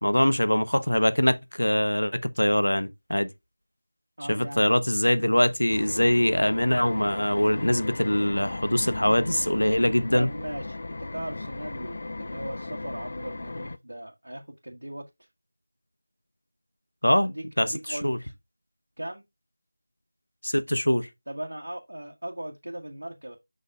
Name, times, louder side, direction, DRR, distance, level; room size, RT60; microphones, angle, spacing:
voice 1, 0.0-3.3 4.3-10.3 17.0-18.2 20.4-21.1, left 1 dB, 75° left, 0.9 m, -23 dB
voice 2, 4.2-4.7 10.1-15.0 17.2-18.3 19.0-19.2 21.3-23.4, right 1 dB, 70° right, 1.4 m, -38 dB
sound 1, 5.7-13.8, left 2 dB, 40° left, 0.3 m, -37 dB
7.5 x 5.6 x 2.3 m
figure-of-eight pair, 170°, 0 cm